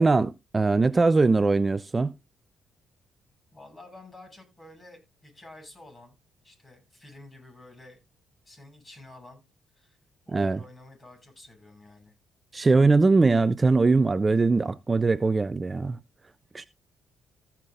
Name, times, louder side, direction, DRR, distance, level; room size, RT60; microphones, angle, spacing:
voice 1, 0.0-2.1 10.3-10.6 12.5-16.0 16.5-16.6, right 3 dB, 25° right, 0.6 m, -21 dB
voice 2, 3.5-6.2 6.4-8.0 8.5-9.4 9.8-10.0 10.3-12.1, left 2 dB, 30° left, 7.9 m, -50 dB
15.5 x 5.8 x 3.8 m
supercardioid pair, 65°, 0 cm